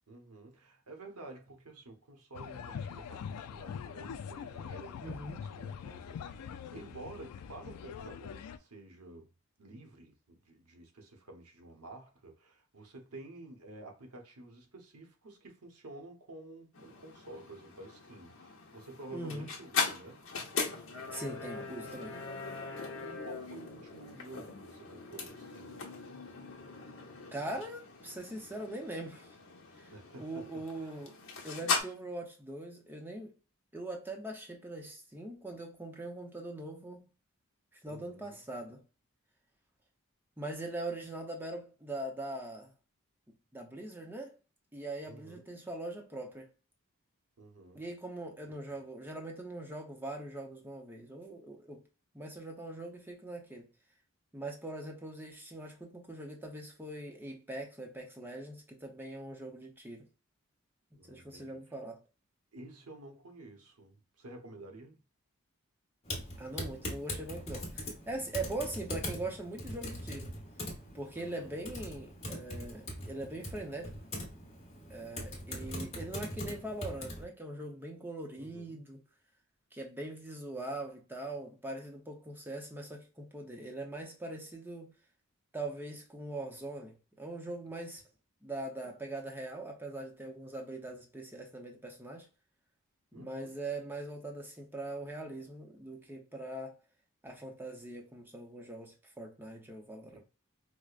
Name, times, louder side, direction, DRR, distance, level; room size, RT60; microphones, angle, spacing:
voice 1, 0.1-9.3 9.6-20.2 22.8-25.8 29.9-31.0 37.8-38.4 45.0-45.5 47.4-47.9 48.5-48.7 60.9-61.6 62.5-65.0 68.5-68.6 71.1-71.5 75.6-76.0 78.3-78.8 93.1-93.5 100.1-100.2, right 2 dB, 85° right, 0.9 m, -51 dB
sound 1, 2.3-8.6, left 7 dB, 90° left, 0.3 m, -43 dB
voice 2, 5.0-5.4 19.1-19.5 21.1-22.1 27.3-29.4 29.7-29.9 30.2-31.2 31.4-33.3 33.7-37.1 37.7-38.8 40.4-42.7 43.5-44.4 44.7-46.5 47.7-51.8 52.1-53.7 54.3-60.1 61.1-62.0 66.4-70.3 70.9-73.9 74.9-79.0 79.7-84.9 85.5-88.0 88.4-92.3 93.1-96.8 97.2-100.2, right 2 dB, 10° right, 0.6 m, -42 dB
sound 2, 16.7-31.8, left 5 dB, 60° left, 0.8 m, -40 dB
Typing, 66.1-77.2, left 1 dB, 30° left, 1.0 m, -41 dB
4.7 x 2.1 x 2.4 m
head